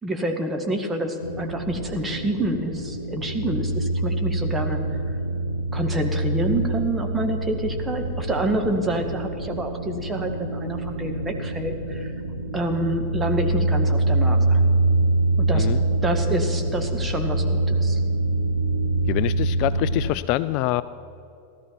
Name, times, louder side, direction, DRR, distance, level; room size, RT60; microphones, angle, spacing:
voice 1, 0.0-5.2 5.7-12.1 12.5-14.7 15.4-15.7 16.0-18.0, right 1 dB, 10° right, 3 dB, 1.7 m, -27 dB
sound 1, 1.2-20.1, right 2 dB, 90° left, 0.9 m, -25 dB
voice 2, 19.1-20.8, left 16 dB, 45° left, 16 dB, 0.3 m, -25 dB
16.5 x 13.0 x 5.9 m, 2.8 s
figure-of-eight pair, 90°, 0 cm